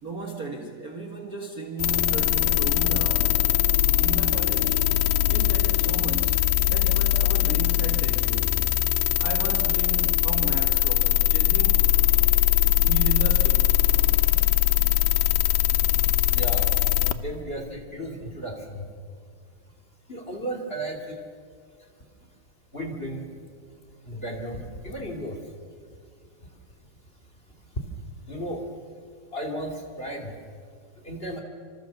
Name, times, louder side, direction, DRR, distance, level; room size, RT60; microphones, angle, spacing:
voice 1, 0.0-3.4 4.0-4.8 5.3-8.6 9.2-11.9 12.8-13.8, right 4 dB, 55° right, 2 dB, 0.9 m, -35 dB
sound 1, 1.8-17.1, left 15 dB, 75° left, 2.0 m, -21 dB
voice 2, 16.3-16.7 17.1-18.8 20.1-21.2 22.7-23.3 24.1-25.4 28.3-28.6 29.3-29.7 30.0-30.3 31.0-31.4, right 1 dB, 20° left, 2 dB, 2.3 m, -34 dB
26.5 x 26.5 x 7.0 m, 2.1 s
omnidirectional pair, 4.3 m